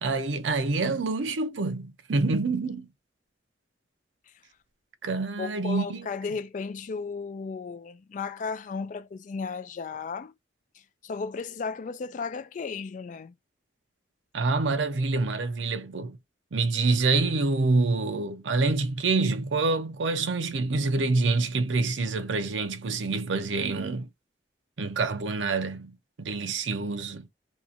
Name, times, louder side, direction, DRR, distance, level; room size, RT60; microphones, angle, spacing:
voice 1, 0.0-2.9 5.0-6.1 14.3-16.2 16.5-24.1 24.8-27.3, right 3 dB, 85° right, 0.6 m, -26 dB
voice 2, 5.4-10.3 10.7-13.3, left 5 dB, 40° left, 0.3 m, -35 dB
2.8 x 2.4 x 2.5 m
head